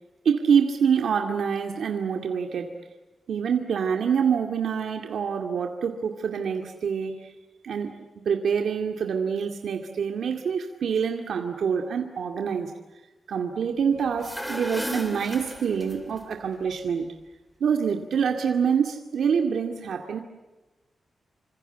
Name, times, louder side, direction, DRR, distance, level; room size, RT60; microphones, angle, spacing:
voice 1, 0.2-2.8 3.3-7.3 7.6-8.0 8.3-12.7 13.3-17.1 17.6-20.2, right 7 dB, 75° right, 2.2 m, -26 dB
sound 1, 14.1-16.2, equal, 5° left, 3.5 m, -35 dB
28.0 x 26.0 x 8.1 m
wide cardioid pair, 170°, 0 cm